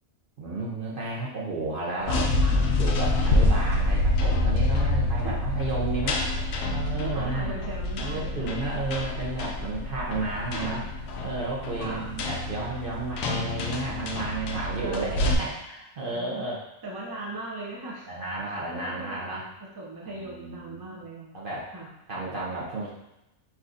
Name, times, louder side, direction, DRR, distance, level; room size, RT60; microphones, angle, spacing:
voice 1, 0.4-6.2 6.7-7.5 8.0-10.8 11.2-16.6 17.0-17.1 18.1-19.4 20.1-21.0 21.3-21.7 22.1-22.9, right 2 dB, 45° right, -4 dB, 0.9 m, -32 dB
sound 1, 2.0-15.3, left 2 dB, 65° left, 0.8 m, -27 dB
voice 2, 5.0-5.3 6.2-6.3 7.0-8.6 10.5-10.8 11.8-12.3 14.5-15.6 16.0-16.5 16.8-18.1 18.5-21.3 21.7-21.9, right 2 dB, 25° right, -4 dB, 0.5 m, -39 dB
5.8 x 3.0 x 2.6 m, 0.91 s
omnidirectional pair, 1.5 m